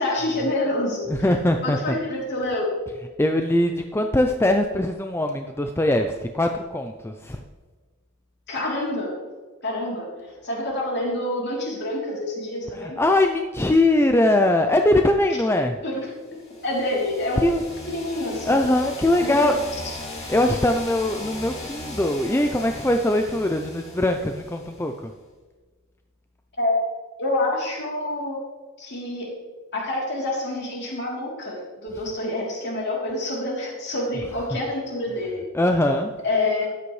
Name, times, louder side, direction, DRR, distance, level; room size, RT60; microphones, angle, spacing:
voice 1, 0.0-1.3 1.6-2.7 8.5-9.1 9.6-13.0 15.8-16.0 16.6-18.5 19.2-19.5 26.6-26.9 27.2-28.4 28.8-29.3 29.7-35.4 36.2-36.7, left 1 dB, 50° left, -3 dB, 3.3 m, -27 dB
voice 2, 1.1-2.0 3.2-7.4 12.7-15.8 17.4-17.6 18.5-19.6 20.3-25.1 35.5-36.1, left 1 dB, 10° left, 4 dB, 0.4 m, -21 dB
sound 1, 16.3-25.0, left 2 dB, 30° left, 3.0 m, -38 dB
13.0 x 9.7 x 3.2 m, 1.4 s
head